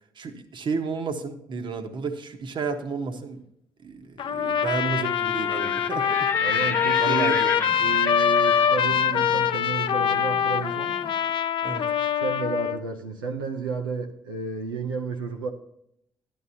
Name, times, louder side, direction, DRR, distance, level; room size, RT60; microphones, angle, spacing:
voice 1, 0.1-3.4 3.8-6.3 7.0-7.6 11.6-11.8, right 4 dB, 50° right, 1.3 m, -31 dB
Trumpet, 4.2-12.8, left 8 dB, 50° left, 0.5 m, -24 dB
Livestock farm animals working animals, 5.3-11.2, left 4 dB, 20° left, 0.7 m, -33 dB
voice 2, 6.4-7.4 7.8-11.0 12.2-15.5, right 5 dB, 90° right, 0.6 m, -31 dB
11.0 x 11.0 x 2.8 m
hypercardioid pair, 50°, 11 cm